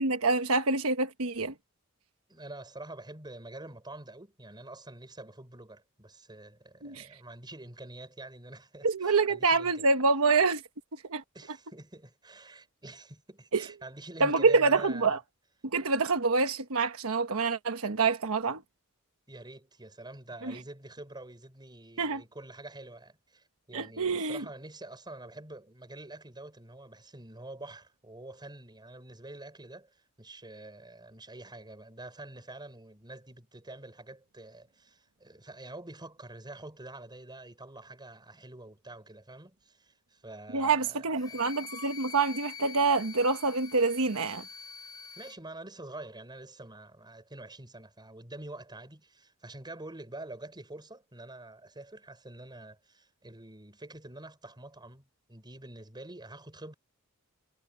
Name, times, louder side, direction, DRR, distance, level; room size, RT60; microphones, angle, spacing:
voice 1, 0.0-1.5 6.8-7.1 8.8-10.6 11.1-11.2 13.5-13.6 14.2-15.2 15.7-18.6 20.4-20.5 22.0-22.2 23.7-24.4 40.5-44.4, right 4 dB, 65° right, 1.3 m, -26 dB
voice 2, 2.3-9.8 11.3-15.2 19.3-41.4 45.2-56.7, right 2 dB, 20° right, 5.6 m, -47 dB
Wind instrument woodwind instrument, 41.2-45.4, left 7 dB, 20° left, 5.2 m, -45 dB
head